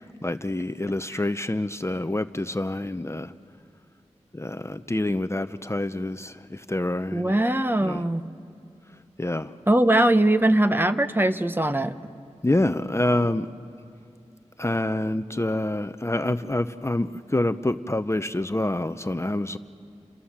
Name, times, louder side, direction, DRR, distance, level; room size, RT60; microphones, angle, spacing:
voice 1, 0.2-3.3 4.3-7.3 7.8-8.0 9.2-9.5 12.4-13.5 14.6-19.6, left 1 dB, 20° left, 11 dB, 0.7 m, -27 dB
voice 2, 7.1-8.2 9.7-11.9, right 1 dB, 15° right, 9 dB, 1.1 m, -21 dB
29.0 x 24.5 x 7.4 m, 2.5 s
cardioid pair, 45°, 12 cm